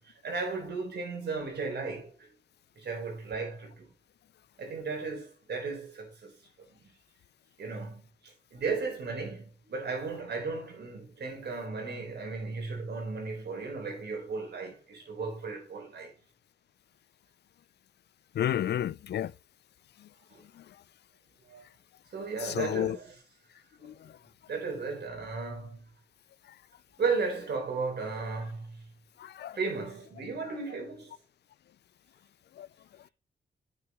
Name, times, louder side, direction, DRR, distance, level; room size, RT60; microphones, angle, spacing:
voice 1, 0.0-2.3 2.8-3.9 4.6-6.3 6.6-6.8 7.6-16.1 20.3-20.4 21.5-21.6 22.1-23.2 24.5-25.9 27.0-28.9 29.5-31.2, right 4 dB, 80° right, 3.9 m, -35 dB
voice 2, 18.4-19.3 22.4-23.0 23.8-23.9 29.2-29.6 32.6-32.7, left 11 dB, 80° left, 0.4 m, -30 dB
9.1 x 6.7 x 3.0 m
cardioid pair, 80°, 17 cm